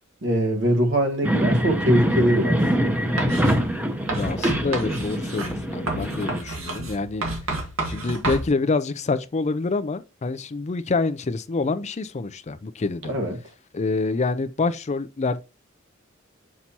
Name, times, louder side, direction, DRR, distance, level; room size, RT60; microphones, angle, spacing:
voice 1, 0.2-2.6 13.1-13.4, equal, 65° right, 1.4 m, -22 dB
sound 1, 1.2-6.4, equal, 5° right, 0.8 m, -24 dB
Writing, 3.2-3.6 4.1-8.5, right 2 dB, 80° right, 2.0 m, -30 dB
voice 2, 4.1-7.2 7.9-13.1 13.7-15.4, left 3 dB, 35° left, 0.5 m, -26 dB
6.0 x 5.6 x 2.8 m
head